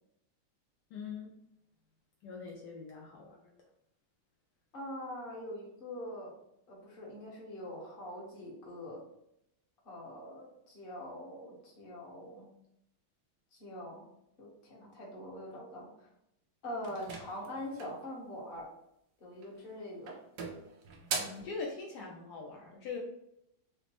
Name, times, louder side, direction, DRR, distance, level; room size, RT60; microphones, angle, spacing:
voice 1, 0.9-1.3 2.2-3.5 21.2-23.0, left 4 dB, 85° left, -2 dB, 0.9 m, -42 dB
voice 2, 4.7-6.3 6.7-9.0 9.8-12.5 13.5-14.1 14.4-15.9 16.6-18.7 19.2-20.1, left 1 dB, 40° left, -4 dB, 0.8 m, -43 dB
sound 1, 16.8-18.1 19.3-19.7 20.1-21.5, right 5 dB, 80° right, 0.9 m, -40 dB
4.9 x 2.0 x 2.9 m, 0.80 s
omnidirectional pair, 2.4 m